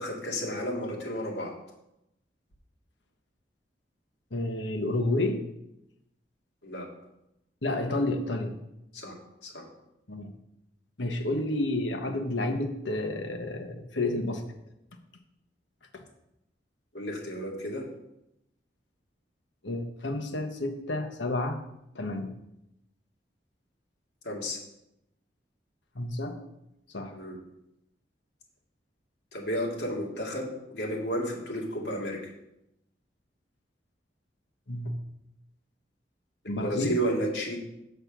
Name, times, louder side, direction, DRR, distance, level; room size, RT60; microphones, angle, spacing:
voice 1, 0.0-1.6 6.6-6.9 8.9-9.1 9.4-9.6 16.9-17.9 24.2-24.6 27.1-27.4 29.3-32.3 36.4-37.6, equal, 65° left, -2 dB, 2.3 m, -32 dB
voice 2, 4.3-5.5 7.6-8.6 10.1-10.3 11.0-14.4 15.9-16.0 19.6-21.6 21.9-22.3 25.9-26.4 26.9-27.1 34.7-34.9 36.5-37.0, left 2 dB, 90° left, 5 dB, 1.2 m, -30 dB
6.9 x 6.5 x 6.0 m, 0.85 s
head